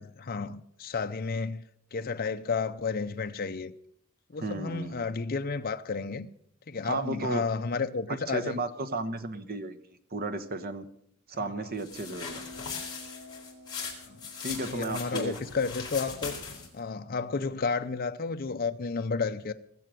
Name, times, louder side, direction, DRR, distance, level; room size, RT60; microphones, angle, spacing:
voice 1, 0.0-1.6 1.9-3.7 4.3-6.3 6.7-8.6 11.4-11.7 14.1-14.2 14.6-16.4 16.7-19.5, left 4 dB, 45° left, 0.6 m, -32 dB
voice 2, 4.4-5.0 6.8-7.4 8.1-9.8 10.1-10.8 11.3-12.4 14.4-15.4, right 2 dB, 45° right, 1.2 m, -34 dB
sound 1, 11.8-16.8, left 5 dB, 20° left, 4.2 m, -39 dB
sound 2, 11.9-16.8, left 3 dB, 15° right, 3.7 m, -51 dB
19.0 x 7.7 x 7.6 m
head